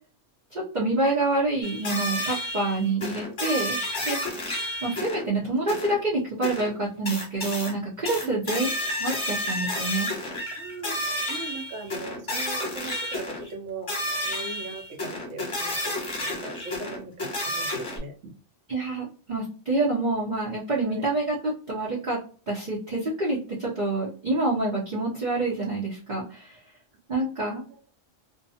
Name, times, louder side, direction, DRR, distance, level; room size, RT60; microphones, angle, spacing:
voice 1, 0.5-3.8 4.0-4.2 4.8-8.7 9.0-10.1 18.7-22.2 22.5-26.6 27.1-27.6, right 2 dB, 45° right, -5 dB, 0.8 m, -27 dB
sound 1, 1.6-5.3 5.7-6.0 6.4-6.7 7.0-7.7 8.0-13.5 13.9-18.0, left 1 dB, 25° left, 0.9 m, -31 dB
voice 2, 10.6-11.0 11.3-18.4 20.8-21.1 27.2-27.3, right 3 dB, 70° right, 3 dB, 1.0 m, -40 dB
2.6 x 2.2 x 2.6 m, 0.39 s
omnidirectional pair, 1.3 m